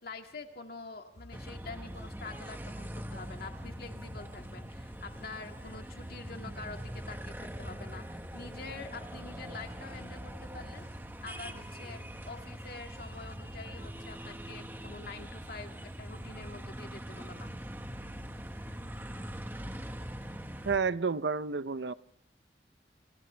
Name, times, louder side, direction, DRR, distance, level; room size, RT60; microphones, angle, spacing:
voice 1, 0.0-10.8 11.2-17.5, left 3 dB, 55° left, 2.3 m, -46 dB
sound 1, 1.1-13.9, left 1 dB, 80° left, 1.6 m, -57 dB
sound 2, 1.3-20.8, equal, 10° right, 1.5 m, -43 dB
voice 2, 20.7-21.9, right 5 dB, 75° right, 0.7 m, -30 dB
29.5 x 27.5 x 3.4 m
head